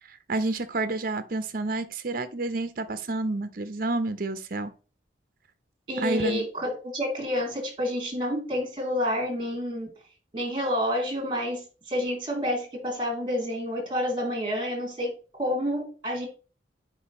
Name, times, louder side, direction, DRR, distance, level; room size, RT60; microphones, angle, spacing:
voice 1, 0.1-4.7 6.0-6.5, right 2 dB, 55° right, 0.7 m, -29 dB
voice 2, 5.9-9.9 10.3-15.1 15.4-16.3, equal, 30° right, 3.0 m, -29 dB
10.0 x 4.8 x 3.0 m
head